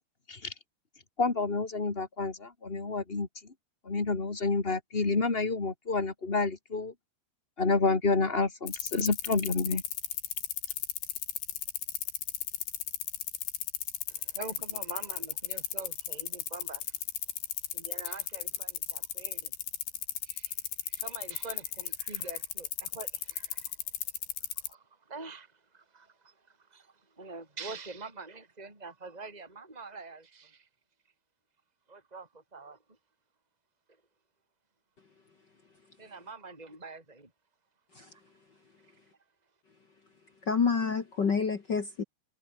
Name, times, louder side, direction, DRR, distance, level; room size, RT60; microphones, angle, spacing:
voice 1, 1.2-3.3 3.8-6.9 7.6-9.8, left 3 dB, 30° left, 1.0 m, -29 dB
sound 1, 8.7-24.7, left 12 dB, 80° left, 4.3 m, -34 dB
voice 2, 14.1-17.0 17.7-19.5 20.2-23.8 24.6-30.7 31.9-33.0 36.0-37.3 38.0-38.2, right 3 dB, 10° right, 5.6 m, -45 dB
voice 3, 40.4-42.0, left 5 dB, 50° left, 1.2 m, -28 dB
omnidirectional pair, 4.8 m